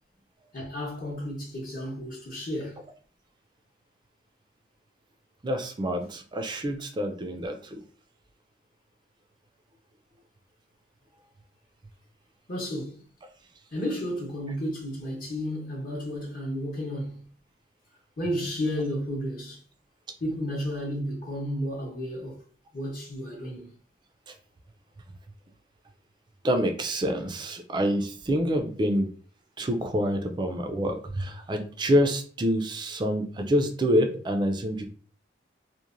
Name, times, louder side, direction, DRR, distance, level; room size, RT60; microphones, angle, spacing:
voice 1, 0.5-2.8 12.5-13.0 13.7-17.2 18.2-19.6 20.2-22.4 22.7-23.7, equal, 45° left, 0.7 m, -32 dB
voice 2, 5.4-7.8 24.3-24.4 26.4-29.1 29.6-34.9, equal, 25° right, 0.3 m, -27 dB
3.0 x 2.1 x 2.4 m
head